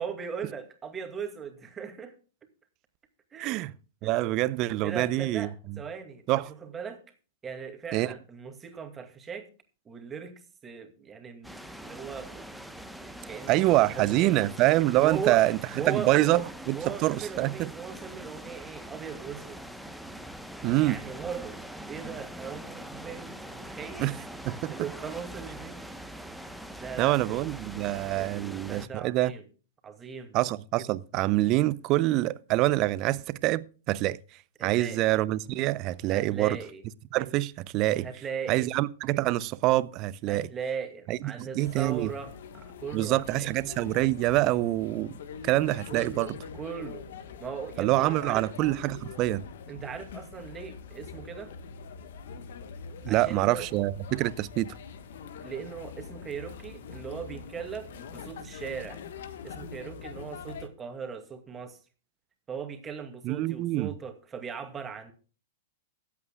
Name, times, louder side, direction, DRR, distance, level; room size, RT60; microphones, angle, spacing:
voice 1, 0.0-2.1 3.3-3.6 4.0-4.1 4.8-6.2 6.5-7.0 7.4-9.5 9.9-10.3 10.6-12.6 13.0-14.5 15.0-15.4 15.7-16.5 16.7-19.6 20.8-21.6 21.9-24.2 24.7-25.8 26.8-27.5 28.1-29.4 29.8-30.4 34.6-35.0 36.1-36.8 38.0-38.7 40.3-43.5 45.9-46.3 46.5-47.1 47.4-48.5 49.7-51.5 53.1-53.8 55.4-59.0 59.4-61.8 62.5-65.1, right 6 dB, 20° right, 2.3 m, -38 dB
voice 2, 3.4-3.7 4.0-5.5 6.3-6.5 7.9-8.1 13.5-15.6 15.9-16.8 17.0-17.7 20.6-21.0 24.0-24.1 24.4-24.8 27.0-29.3 30.3-34.2 34.6-36.6 37.1-38.1 38.5-40.5 41.1-42.1 42.9-45.2 45.4-46.3 47.8-49.4 53.0-54.7 63.2-63.9, right 17 dB, 40° right, 0.6 m, -26 dB
sound 1, 11.4-28.9, right 1 dB, ahead, 1.0 m, -43 dB
sound 2, 41.6-60.7, left 6 dB, 65° left, 1.3 m, -44 dB
22.5 x 8.4 x 2.3 m
hypercardioid pair, 110°, 0 cm